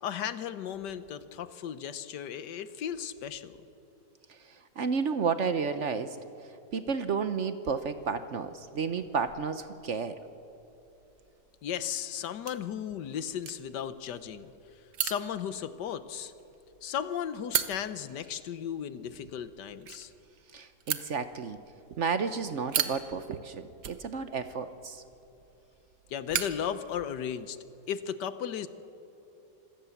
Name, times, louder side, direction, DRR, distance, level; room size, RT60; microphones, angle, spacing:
voice 1, 0.0-3.6 11.6-14.5 15.0-16.3 16.8-20.1 26.1-27.6 27.9-28.7, left 9 dB, 85° left, 13 dB, 1.5 m, -35 dB
voice 2, 4.8-6.2 6.7-10.2 20.5-21.6 22.0-25.0, right 5 dB, 55° right, 11 dB, 1.0 m, -31 dB
sound 1, 7.8-27.5, right 9 dB, 80° right, 1.6 m, -40 dB
26.5 x 16.0 x 7.2 m, 2.9 s
omnidirectional pair, 1.8 m